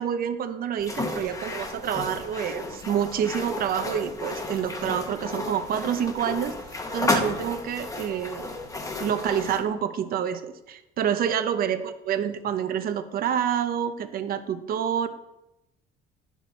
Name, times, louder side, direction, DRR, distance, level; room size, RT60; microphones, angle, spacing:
voice 1, 0.0-6.5 6.9-8.5 9.0-15.1, right 8 dB, 60° right, 10 dB, 0.8 m, -28 dB
sound 1, 0.8-9.6, left 2 dB, 20° left, 1.1 m, -32 dB
9.9 x 6.1 x 4.1 m, 0.93 s
cardioid pair, 110°, 17 cm